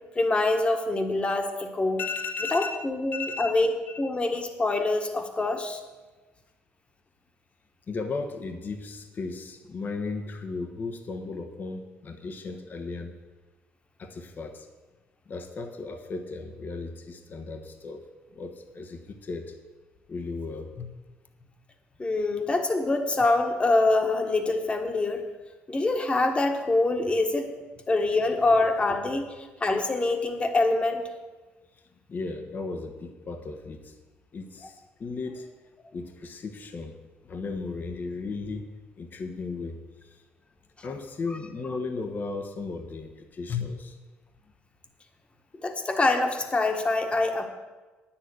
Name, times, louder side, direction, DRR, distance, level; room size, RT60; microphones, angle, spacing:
voice 1, 0.1-2.0 2.5-3.7 4.0-5.8 22.0-25.2 25.7-27.5 27.9-31.0 45.6-47.5, left 2 dB, 25° left, 5 dB, 1.6 m, -25 dB
voice 2, 2.0-4.0 7.9-13.1 14.0-14.7 15.3-18.1 18.3-19.6 20.1-20.9 32.1-33.9 34.3-35.5 35.9-37.0 37.2-38.7 39.0-40.2 40.8-44.0, left 4 dB, 45° left, 5 dB, 1.2 m, -35 dB
9.9 x 7.1 x 8.0 m, 1.3 s
supercardioid pair, 80°, 4 cm